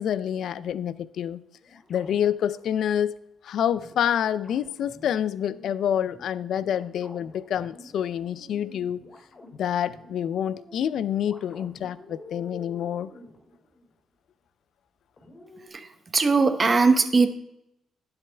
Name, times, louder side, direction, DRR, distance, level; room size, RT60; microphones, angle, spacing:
voice 1, 0.0-1.4 1.7-3.2 3.4-9.0 9.6-13.1, left 9 dB, 70° left, 16 dB, 0.4 m, -27 dB
sound 1, 1.6-2.8 3.7-14.0 15.2-15.7, left 1 dB, 40° left, 2.6 m, -49 dB
voice 2, 15.7-17.3, right 4 dB, 35° right, 9 dB, 0.9 m, -20 dB
10.5 x 7.9 x 3.4 m, 0.82 s
cardioid pair, 90°, 0 cm